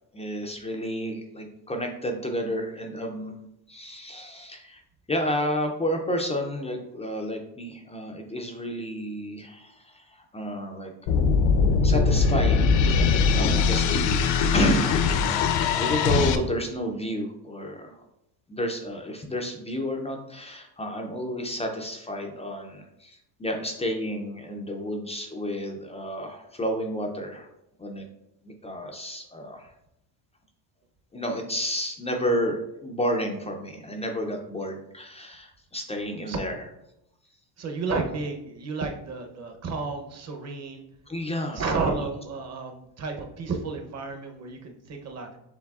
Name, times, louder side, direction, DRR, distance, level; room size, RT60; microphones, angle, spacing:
voice 1, 0.1-3.3 3.7-4.8 5.1-10.9 11.8-12.8 13.1-14.2 14.5-18.0 18.5-27.5 27.8-28.1 28.4-29.7 31.1-36.7 41.1-41.7, equal, 15° left, 3 dB, 0.3 m, -31 dB
sound 1, 11.1-16.4, left 5 dB, 65° left, 0.6 m, -21 dB
voice 2, 37.6-40.8 41.5-45.3, right 4 dB, 35° right, 4 dB, 0.7 m, -31 dB
7.2 x 3.2 x 2.3 m, 0.83 s
cardioid pair, 120°, 47 cm